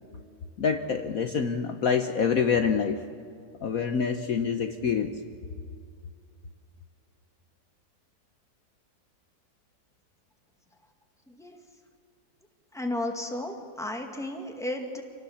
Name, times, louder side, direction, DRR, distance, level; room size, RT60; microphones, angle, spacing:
voice 1, 0.6-3.0 3.6-5.1, left 6 dB, 60° left, 7 dB, 1.2 m, -26 dB
voice 2, 11.3-11.6 12.7-15.0, left 1 dB, ahead, 3 dB, 1.8 m, -33 dB
26.5 x 18.5 x 7.2 m, 2.3 s
omnidirectional pair, 1.9 m